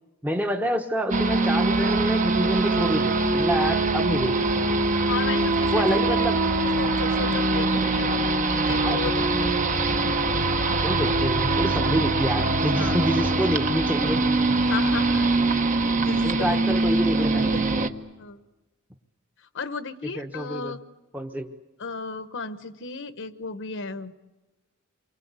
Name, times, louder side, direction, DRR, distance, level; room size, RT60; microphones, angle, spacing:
voice 1, 0.2-4.8 5.7-6.5 8.8-9.0 10.8-14.2 16.2-17.5 20.2-20.7 21.1-21.5, equal, 10° right, 4 dB, 1.1 m, -27 dB
sound 1, 1.1-17.9, right 2 dB, 35° right, 1.2 m, -23 dB
voice 2, 5.1-6.3 6.6-8.1 8.5-9.7 12.1-12.3 12.7-13.1 14.7-17.6 18.2-18.4 19.4-20.8 21.8-24.1, left 4 dB, 60° left, 11 dB, 1.0 m, -35 dB
29.0 x 23.5 x 8.2 m, 1.1 s
head